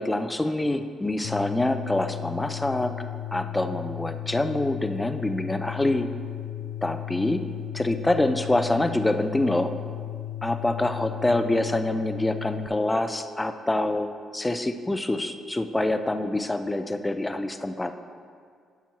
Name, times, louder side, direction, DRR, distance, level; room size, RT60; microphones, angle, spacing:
voice 1, 0.0-2.9 3.3-6.1 6.8-7.4 7.7-9.7 10.4-17.9, left 1 dB, 15° left, 8 dB, 0.5 m, -26 dB
sound 1, 1.2-12.7, left 12 dB, 80° left, 0.3 m, -35 dB
10.5 x 6.9 x 3.0 m, 2.1 s
cardioid pair, 90°, 0 cm